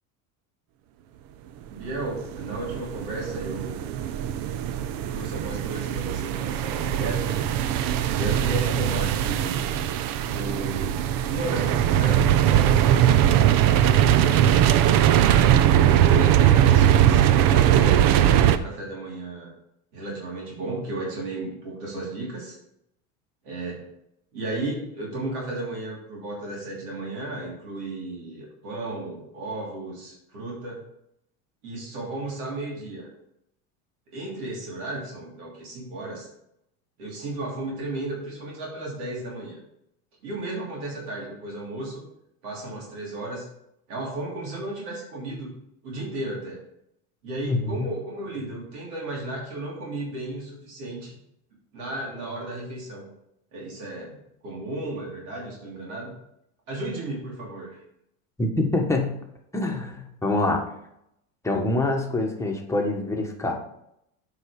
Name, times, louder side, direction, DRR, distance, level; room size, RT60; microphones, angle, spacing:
voice 1, 1.7-3.9 5.0-7.3 8.1-9.6 10.3-12.8 16.0-19.5 19.9-22.6 23.4-23.9 24.3-30.9 31.6-33.1 34.1-36.3 37.0-39.6 40.2-42.1 42.4-43.5 43.9-45.5 45.8-46.6 47.2-51.2 51.7-53.1 53.5-56.1 56.7-57.8, right 2 dB, 85° right, -3 dB, 3.0 m, -34 dB
sound 1, 2.1-18.6, right 11 dB, 50° right, 0.6 m, -20 dB
voice 2, 47.5-47.9 58.4-59.1 59.5-60.6 61.4-63.6, left 2 dB, 5° left, 1 dB, 1.4 m, -25 dB
8.0 x 4.9 x 4.8 m, 0.79 s
supercardioid pair, 105°, 44 cm